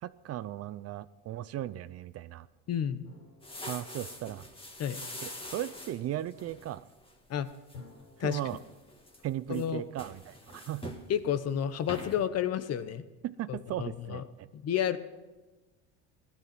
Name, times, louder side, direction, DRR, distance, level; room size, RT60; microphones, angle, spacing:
voice 1, 0.0-2.5 3.6-4.5 5.2-6.9 8.2-8.6 9.2-11.0 13.2-14.5, right 12 dB, 45° right, 16 dB, 0.6 m, -37 dB
voice 2, 2.7-3.0 4.8-5.0 7.3-7.5 8.2-8.4 9.5-9.8 11.1-13.0 13.5-14.2 14.5-15.0, left 9 dB, 45° left, 12 dB, 1.0 m, -31 dB
sound 1, 3.0-5.4 7.7-10.6, left 4 dB, 80° left, 4.4 m, -56 dB
sound 2, 3.4-7.1 7.5-7.8 8.2-9.2 9.5-11.1 11.5-11.6 11.9-12.3, left 1 dB, 15° left, 2.1 m, -44 dB
16.0 x 12.0 x 6.1 m, 1.2 s
supercardioid pair, 105°, 36 cm